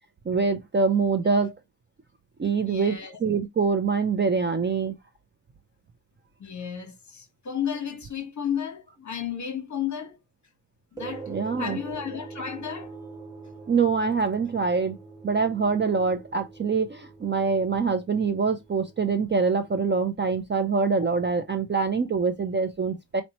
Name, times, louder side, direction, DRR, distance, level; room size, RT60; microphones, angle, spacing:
voice 1, 0.3-1.6 2.4-5.0 11.3-11.8 13.7-15.0 15.2-23.2, right 5 dB, 30° right, 0.4 m, -24 dB
voice 2, 2.6-3.2 6.4-10.2 10.9-11.3 11.6-13.0, left 8 dB, 45° left, 1.2 m, -33 dB
sound 1, 11.0-19.7, right 4 dB, 10° right, 1.2 m, -44 dB
4.3 x 2.9 x 2.9 m
wide cardioid pair, 160°, 41 cm